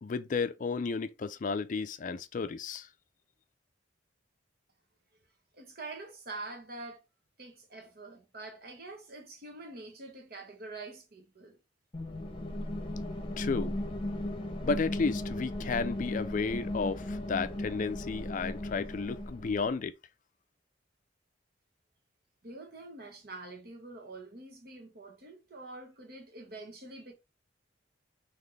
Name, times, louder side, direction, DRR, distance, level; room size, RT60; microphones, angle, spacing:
voice 1, 0.0-2.9 13.4-13.7 14.6-19.9, left 4 dB, 45° left, 0.4 m, -32 dB
voice 2, 5.5-7.1 7.4-11.6 22.4-27.1, right 2 dB, 55° right, 1.2 m, -45 dB
sound 1, 11.9-19.7, left 1 dB, 30° left, 0.8 m, -36 dB
4.1 x 3.0 x 3.3 m
head